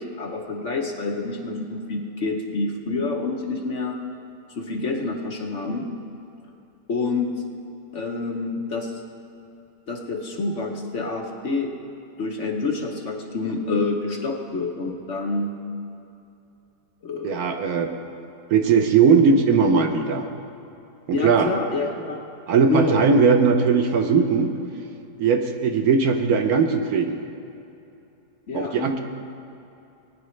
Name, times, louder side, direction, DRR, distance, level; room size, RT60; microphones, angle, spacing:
voice 1, 0.0-4.0 4.6-5.9 6.9-7.3 7.9-8.9 9.9-11.7 12.2-15.5 17.0-17.4 21.1-22.2 22.7-23.0 28.5-29.0, left 3 dB, 50° left, 1 dB, 1.1 m, -27 dB
voice 2, 17.2-17.9 18.5-20.3 21.1-21.5 22.5-24.5 25.2-27.2 28.5-29.0, right 5 dB, 65° right, 5 dB, 1.2 m, -19 dB
20.0 x 9.9 x 3.2 m, 2.8 s
omnidirectional pair, 1.8 m